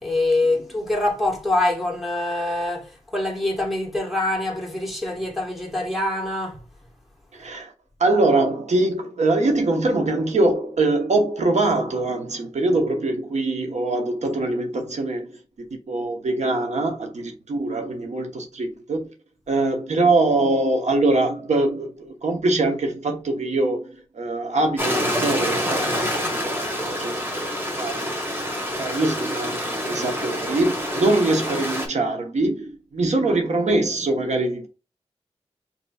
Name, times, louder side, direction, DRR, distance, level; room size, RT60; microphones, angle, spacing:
voice 1, 0.0-6.6, left 2 dB, ahead, 1.4 m, -24 dB
voice 2, 7.3-7.7 8.0-15.3 15.9-19.1 19.5-27.1 27.8-28.2 28.8-34.7, right 2 dB, 75° right, 1.0 m, -23 dB
Stream, 24.8-31.9, equal, 20° right, 1.6 m, -27 dB
5.3 x 3.0 x 2.3 m
wide cardioid pair, 85°, 12 cm